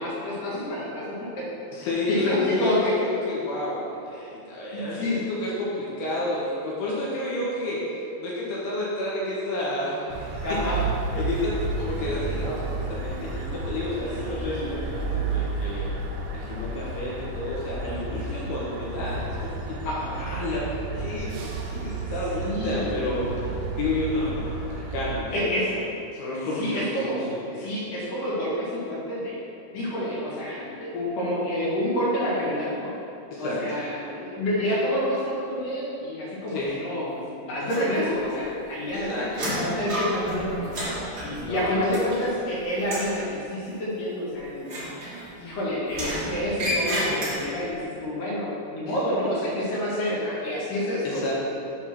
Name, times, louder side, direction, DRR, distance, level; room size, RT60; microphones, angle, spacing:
voice 1, 0.0-1.4 2.1-2.9 4.7-5.2 10.4-10.8 14.3-14.7 19.8-20.1 22.3-22.9 25.3-25.7 26.6-27.2 27.6-29.4 29.7-32.9 33.4-39.3 39.6-40.7 41.2-44.7 45.4-51.2, left 1 dB, 60° left, -8 dB, 3.0 m, -28 dB
voice 2, 1.7-7.8 8.2-10.6 11.1-15.9 16.3-19.8 20.2-25.8 26.1-27.4 33.3-33.6 36.5-36.7 38.9-39.6 41.4-42.1 48.9-49.0 51.0-51.3, left 2 dB, 75° left, -6 dB, 2.9 m, -31 dB
sound 1, 10.1-25.2, right 3 dB, 90° right, 2.8 m, -32 dB
sound 2, 37.7-38.4 38.7-42.5 42.8-43.2 44.6-45.5 45.9-47.7, right 1 dB, 65° right, 0.9 m, -31 dB
7.4 x 3.4 x 6.1 m, 2.7 s
omnidirectional pair, 4.9 m